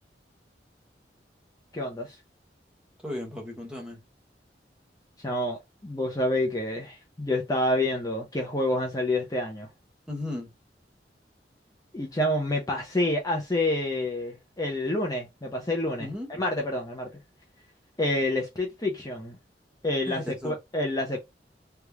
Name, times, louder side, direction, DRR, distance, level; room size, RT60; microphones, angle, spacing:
voice 1, 1.7-2.2 5.2-9.7 11.9-17.1 18.0-19.4 19.8-21.2, left 1 dB, 20° left, 0.8 m, -28 dB
voice 2, 3.0-4.0 10.1-10.5 16.0-16.3 20.1-20.6, left 1 dB, 5° right, 1.3 m, -35 dB
3.5 x 3.1 x 2.2 m
head